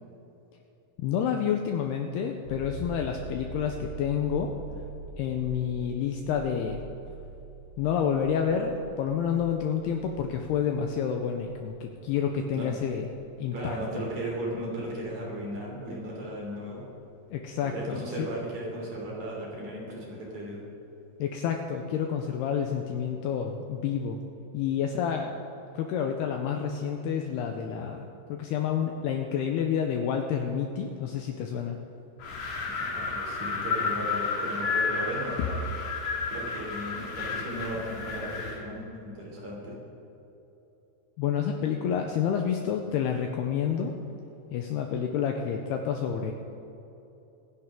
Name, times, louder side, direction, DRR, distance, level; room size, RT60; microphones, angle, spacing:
voice 1, 1.0-4.5 5.2-6.8 7.8-13.1 13.4-13.8 17.3-18.3 21.2-24.2 24.5-25.3 25.7-31.8 35.4-35.5 41.2-43.9 44.5-46.3, left 8 dB, 90° left, 3 dB, 2.3 m, -29 dB
sound 1, 2.4-15.9 18.7-18.8, right 3 dB, 35° left, 4.9 m, -45 dB
voice 2, 13.5-16.9 17.7-20.6 32.8-35.6 36.3-39.8, right 1 dB, 40° right, -3 dB, 3.9 m, -36 dB
Wind, 32.2-38.6, left 4 dB, 55° left, 2.7 m, -32 dB
25.0 x 10.5 x 3.7 m, 2.9 s
omnidirectional pair, 5.5 m